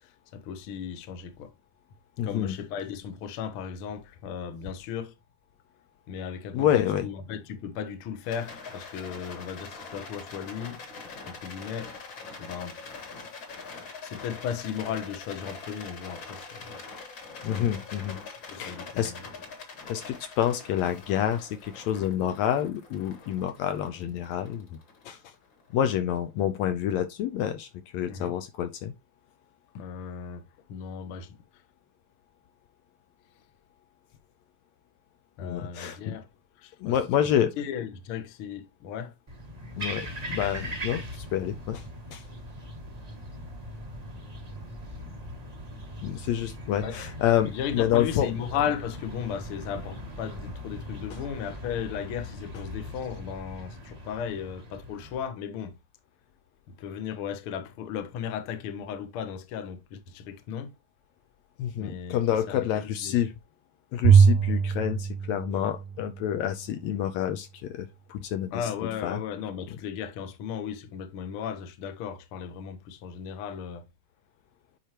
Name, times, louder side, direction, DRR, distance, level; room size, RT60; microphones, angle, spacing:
voice 1, 0.0-1.5 2.2-5.1 6.1-10.8 11.2-11.9 12.4-12.8 14.0-16.7 17.5-17.8 18.3-19.2 28.1-28.3 29.7-30.4 30.7-31.4 35.4-36.3 36.6-37.0 37.6-39.1 46.8-47.0 47.4-55.8 56.8-60.7 61.8-62.2 62.5-63.2 68.5-73.9, left 8 dB, 60° left, 1.5 m, -36 dB
voice 2, 2.2-2.6 6.5-7.1 17.4-18.2 18.6-19.1 19.9-24.8 25.1-25.3 25.7-28.9 35.4-36.2 36.8-37.5 39.8-41.8 42.1-42.2 46.0-48.3 51.1-51.2 61.6-63.3 63.9-68.7 69.0-69.2, left 10 dB, 75° left, 1.8 m, -28 dB
Rattle, 8.2-25.6, left 4 dB, 45° left, 2.1 m, -44 dB
sound 1, 39.3-55.3, equal, 35° right, 0.6 m, -40 dB
Bowed string instrument, 64.0-66.4, right 6 dB, 80° right, 1.9 m, -21 dB
10.0 x 4.6 x 2.9 m
omnidirectional pair, 3.4 m